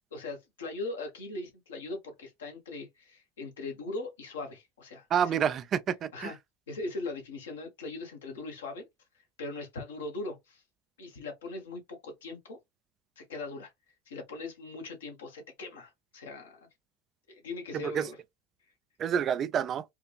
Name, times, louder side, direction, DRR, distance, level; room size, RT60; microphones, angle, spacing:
voice 1, 0.1-5.4 6.1-6.4 6.7-8.9 9.4-10.6 11.0-12.6 13.2-13.7 14.1-16.6 17.3-18.2, left 2 dB, 75° left, 1.4 m, -40 dB
voice 2, 5.1-6.3 17.7-18.1 19.0-19.8, right 8 dB, 40° right, 0.4 m, -28 dB
4.4 x 2.5 x 2.4 m
figure-of-eight pair, 70°, 0 cm